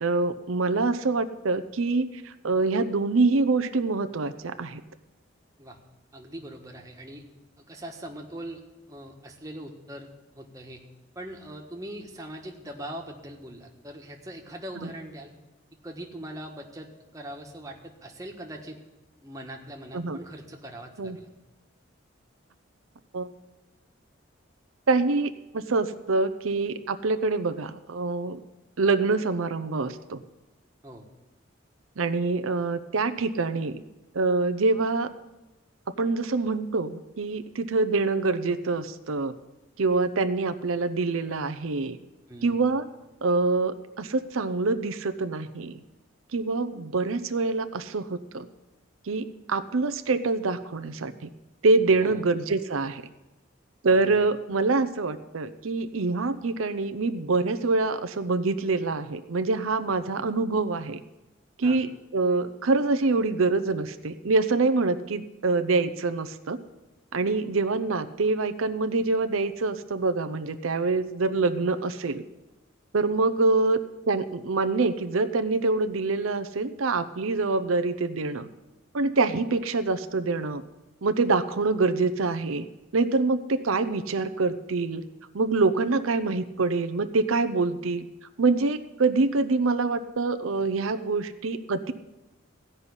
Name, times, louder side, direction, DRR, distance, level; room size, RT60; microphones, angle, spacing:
voice 1, 0.0-4.8 14.8-14.9 19.9-20.2 21.0-21.2 23.1-23.3 24.9-28.4 28.8-30.2 32.0-33.8 34.1-35.1 36.0-39.3 39.8-42.0 42.4-42.8 43.2-45.8 46.3-48.5 49.1-51.1 51.6-53.0 53.8-61.0 61.6-66.6 67.1-72.2 72.9-73.8 74.1-78.5 78.9-80.6 81.0-82.7 82.9-85.0 85.3-88.1 88.4-91.9, right 3 dB, 90° right, 10 dB, 0.7 m, -25 dB
voice 2, 6.1-7.2 7.6-8.6 8.9-10.1 10.4-10.8 11.1-15.3 15.8-18.8 19.2-21.3 30.8-31.1 42.3-42.6 52.0-52.2 53.8-54.1 61.6-61.8, right 1 dB, 15° right, 1 dB, 1.4 m, -41 dB
15.5 x 5.6 x 9.8 m, 1.0 s
head